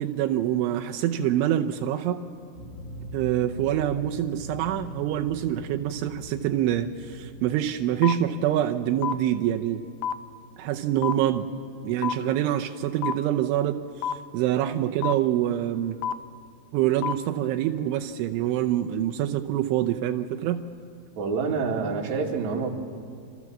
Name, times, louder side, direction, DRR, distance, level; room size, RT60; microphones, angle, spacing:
voice 1, 0.0-2.2 3.1-9.9 10.6-11.5 11.8-13.8 14.3-16.0 16.7-20.6, right 11 dB, 80° right, 4 dB, 3.2 m, -25 dB
sound 1, 2.6-7.6, equal, 60° left, 5.7 m, -40 dB
sound 2, 8.0-8.1 9.0-9.1 10.0-10.1 11.0-11.1 12.0-12.1 13.0-13.1 14.0-14.1 15.0-15.1 16.0-16.1 17.0-17.1, left 8 dB, 80° left, 2.4 m, -27 dB
voice 2, 21.2-22.7, right 5 dB, 45° right, 0 dB, 3.0 m, -27 dB
29.0 x 27.0 x 7.3 m, 2.3 s
omnidirectional pair, 5.5 m